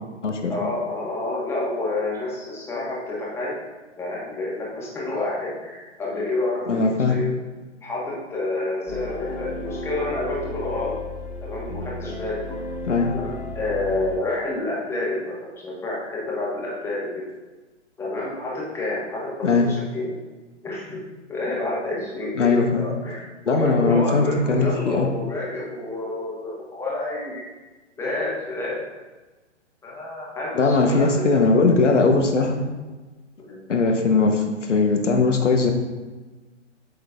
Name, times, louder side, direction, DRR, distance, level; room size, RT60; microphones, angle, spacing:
voice 1, 0.5-3.6 4.0-7.3 7.8-11.0 11.4-12.4 13.0-17.3 18.0-20.2 20.6-21.0 21.3-27.5 28.0-28.9 29.8-31.3 33.5-33.6, left 2 dB, 5° left, -5 dB, 1.4 m, -29 dB
voice 2, 6.7-7.1 12.8-13.1 19.4-19.7 22.3-22.8 23.5-25.1 30.5-32.6 33.7-35.7, left 3 dB, 80° left, 3 dB, 1.1 m, -19 dB
sound 1, 8.9-14.2, left 1 dB, 25° left, 1.5 m, -33 dB
8.2 x 6.4 x 2.4 m, 1.2 s
figure-of-eight pair, 130°, 36 cm